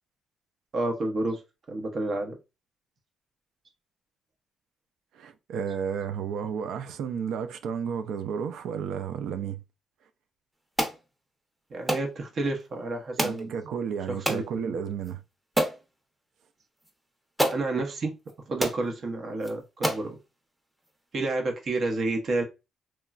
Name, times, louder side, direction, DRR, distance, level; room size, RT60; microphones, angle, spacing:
voice 1, 0.7-1.4 1.7-2.4 11.7-13.6 14.1-14.7 17.5-18.1 18.5-20.2 21.1-22.4, right 2 dB, 50° right, 0.8 m, -30 dB
voice 2, 5.1-9.6 13.2-15.2, right 7 dB, 80° right, 0.4 m, -32 dB
sound 1, 10.8-11.0 11.9-12.1 13.2-13.4 14.3-14.5 15.0-15.1 15.6-15.8 16.9-17.0 17.4-17.6 18.3-18.4 18.6-18.8 19.4-19.5 19.8-20.1, right 1 dB, 10° right, 0.7 m, -27 dB
3.0 x 2.2 x 2.4 m
cardioid pair, 90°, 0 cm